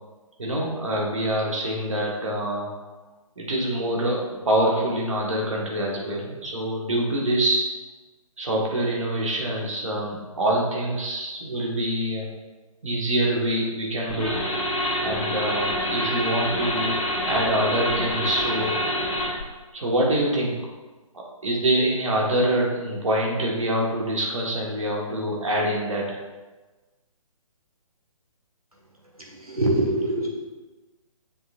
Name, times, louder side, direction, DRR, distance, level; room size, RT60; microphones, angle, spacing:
voice 1, 0.4-2.7 3.4-7.7 8.4-12.3 12.8-14.4 15.0-17.0 17.3-18.9 19.7-20.6 21.1-26.2, right 1 dB, 60° right, -2 dB, 1.8 m, -25 dB
sound 1, 14.1-19.4, equal, 20° left, 2.0 m, -26 dB
voice 2, 29.1-30.3, right 1 dB, 85° right, -2 dB, 1.9 m, -24 dB
7.2 x 6.3 x 2.6 m, 1.2 s
figure-of-eight pair, 135°, 18 cm